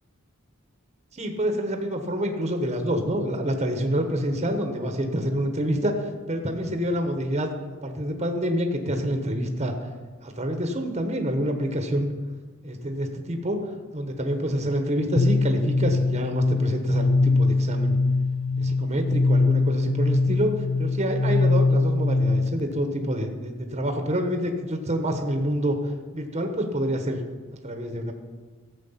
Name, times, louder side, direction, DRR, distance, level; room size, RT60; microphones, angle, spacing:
voice 1, 1.1-7.5 7.8-9.9 10.2-12.1 12.6-18.0 18.6-25.8 26.1-27.2 27.6-28.1, equal, 30° right, 5 dB, 1.1 m, -27 dB
sound 1, 15.2-22.7, left 3 dB, 75° left, 0.4 m, -22 dB
15.0 x 7.5 x 5.7 m, 1.4 s
head